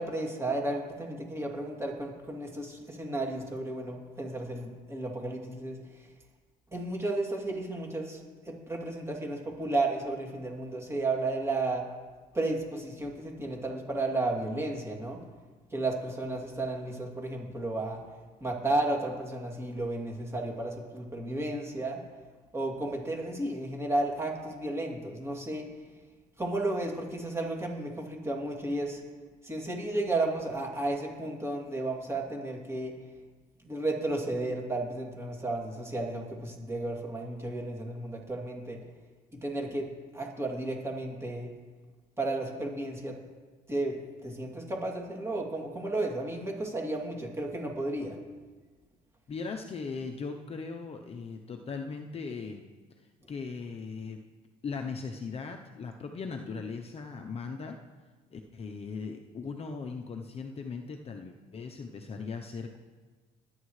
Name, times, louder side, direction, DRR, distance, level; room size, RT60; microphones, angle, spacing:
voice 1, 0.0-5.8 6.7-8.2 8.4-11.8 12.3-15.2 15.7-18.0 18.4-22.0 22.5-25.7 26.4-29.0 29.4-32.9 33.6-38.8 39.4-39.9 40.1-41.5 42.2-43.1 43.7-43.9 44.2-48.2, right 2 dB, 15° right, 0 dB, 2.8 m, -33 dB
voice 2, 49.3-52.7 53.3-54.2 54.6-57.8 58.3-62.8, left 4 dB, 35° left, 4 dB, 0.8 m, -38 dB
21.0 x 9.5 x 3.2 m, 1.3 s
cardioid pair, 110°, 17 cm